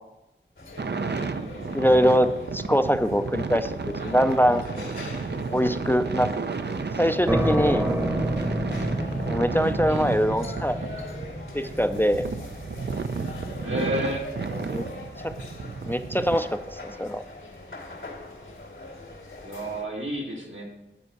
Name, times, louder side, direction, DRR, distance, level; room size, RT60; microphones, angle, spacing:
sound 1, 0.6-19.8, left 2 dB, 85° left, 2.1 m, -42 dB
sound 2, 0.8-16.4, right 4 dB, 60° right, 0.5 m, -32 dB
voice 1, 1.7-3.7 4.0-4.6 5.5-6.3 6.7-7.9 9.3-10.8 11.5-12.2 14.7-14.8 15.2-15.3 15.8-17.2, equal, 10° left, 9 dB, 0.4 m, -23 dB
sound 3, 7.3-14.7, right 1 dB, 15° right, 0.9 m, -29 dB
voice 2, 13.6-14.3 19.4-20.6, equal, 85° right, -3 dB, 2.1 m, -31 dB
9.7 x 4.4 x 6.5 m, 0.97 s
wide cardioid pair, 55°, 19 cm